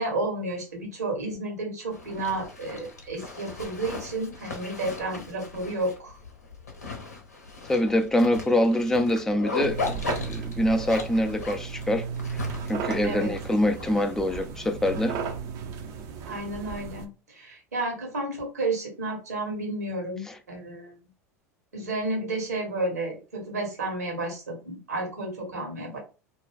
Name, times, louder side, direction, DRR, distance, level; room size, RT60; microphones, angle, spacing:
voice 1, 0.0-6.2 13.0-13.3 16.3-20.9 21.7-26.0, right 2 dB, 85° right, 1.3 m, -31 dB
Zipper (clothing), 1.9-14.4, left 4 dB, 85° left, 0.7 m, -37 dB
voice 2, 7.7-12.1 12.7-15.2 20.3-20.4, left 1 dB, 5° left, 0.4 m, -25 dB
sound 1, 9.6-17.1, right 6 dB, 50° right, 0.6 m, -35 dB
2.6 x 2.2 x 3.4 m
hypercardioid pair, 80°, 8 cm